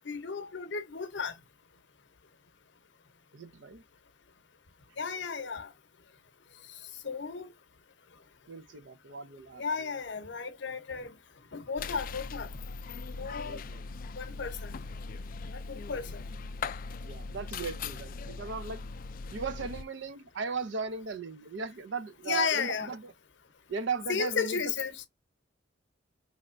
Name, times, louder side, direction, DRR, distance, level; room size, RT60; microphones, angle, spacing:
voice 1, 0.0-1.4 5.0-5.7 6.7-7.5 9.5-11.2 11.5-12.6 13.1-13.6 14.2-14.8 15.5-16.2 22.2-22.9 24.1-25.1, left 5 dB, 65° left, 0.8 m, -34 dB
voice 2, 3.3-3.8 8.5-9.6 13.5-13.9 17.0-18.8 19.3-23.1 23.7-24.6, right 4 dB, 70° right, 0.5 m, -37 dB
sound 1, 11.8-19.8, left 4 dB, 45° left, 0.3 m, -40 dB
4.8 x 3.2 x 2.5 m
head